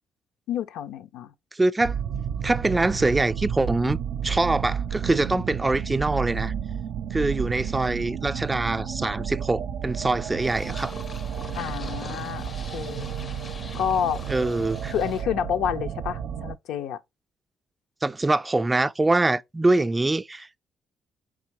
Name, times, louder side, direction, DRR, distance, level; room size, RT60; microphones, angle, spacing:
voice 1, 0.5-1.3 11.6-13.1 13.8-14.2 14.9-17.0, left 9 dB, 90° left, 0.5 m, -29 dB
voice 2, 1.5-2.0 2.4-6.5 7.1-10.9 14.3-14.9 18.0-20.6, right 2 dB, 20° right, 0.4 m, -24 dB
sound 1, 1.8-16.6, right 8 dB, 75° right, 0.5 m, -32 dB
Purr, 10.4-15.2, left 4 dB, 40° left, 0.5 m, -42 dB
4.5 x 3.7 x 2.9 m
cardioid pair, 90°, 0 cm